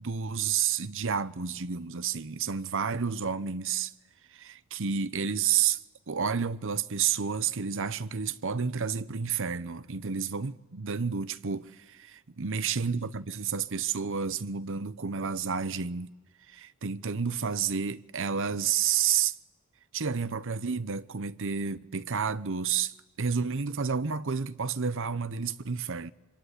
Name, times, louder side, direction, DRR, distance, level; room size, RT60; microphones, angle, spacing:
voice 1, 0.0-3.9 4.3-5.8 6.1-16.1 16.5-19.3 19.9-26.1, right 6 dB, 60° right, 0.9 m, -30 dB
25.0 x 24.0 x 10.0 m
head